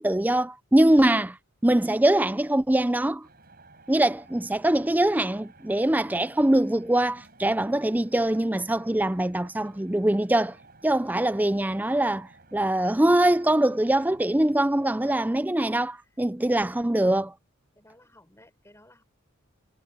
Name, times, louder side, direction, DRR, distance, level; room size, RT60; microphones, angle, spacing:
voice 1, 0.0-1.4 1.6-3.3 3.9-10.5 10.8-17.3, right 1 dB, 10° right, 0.4 m, -23 dB
sound 1, 3.2-15.4, right 2 dB, 45° right, 6.8 m, -55 dB
voice 2, 17.8-19.0, left 1 dB, 10° left, 5.5 m, -55 dB
head